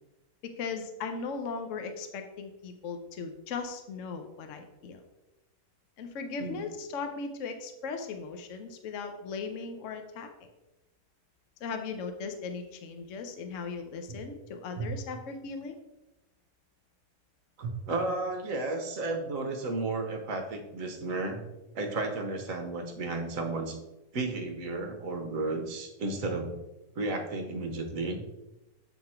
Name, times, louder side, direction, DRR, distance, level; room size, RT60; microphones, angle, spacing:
voice 1, 0.6-5.0 6.0-10.3 11.6-15.8, left 5 dB, 60° left, 6 dB, 0.8 m, -38 dB
voice 2, 17.6-21.4 21.7-23.8 24.1-26.5 26.9-28.2, right 3 dB, 55° right, 4 dB, 1.2 m, -33 dB
7.9 x 3.7 x 4.3 m, 0.98 s
omnidirectional pair, 1.9 m